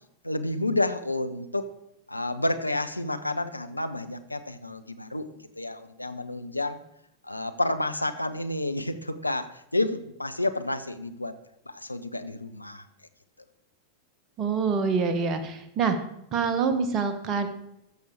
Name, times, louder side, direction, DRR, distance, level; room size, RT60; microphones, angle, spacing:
voice 1, 0.2-1.7 2.1-5.3 5.6-6.8 7.2-11.4 11.7-12.9, left 2 dB, 85° left, 9 dB, 0.7 m, -30 dB
voice 2, 14.4-16.0 16.3-17.5, right 5 dB, 30° right, 7 dB, 1.4 m, -26 dB
13.5 x 7.0 x 4.7 m, 0.82 s
figure-of-eight pair, 90°, 0 cm